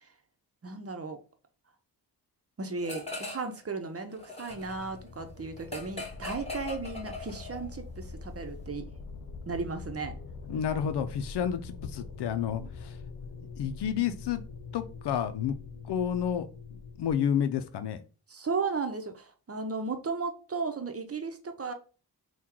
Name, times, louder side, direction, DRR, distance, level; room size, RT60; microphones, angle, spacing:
voice 1, 0.6-1.2 2.6-8.8 9.5-10.1 12.6-12.7 18.3-21.7, right 4 dB, 35° right, 6 dB, 0.8 m, -35 dB
sound 1, 2.8-3.6 3.9-7.7, left 2 dB, 15° left, 2.0 m, -40 dB
sound 2, 4.5-17.1, left 4 dB, 55° left, 0.7 m, -44 dB
voice 2, 10.5-13.0 13.6-14.4 14.7-15.6 15.8-18.0, left 8 dB, 90° left, 11 dB, 0.6 m, -30 dB
3.7 x 2.3 x 4.4 m, 0.36 s
cardioid pair, 55°, 39 cm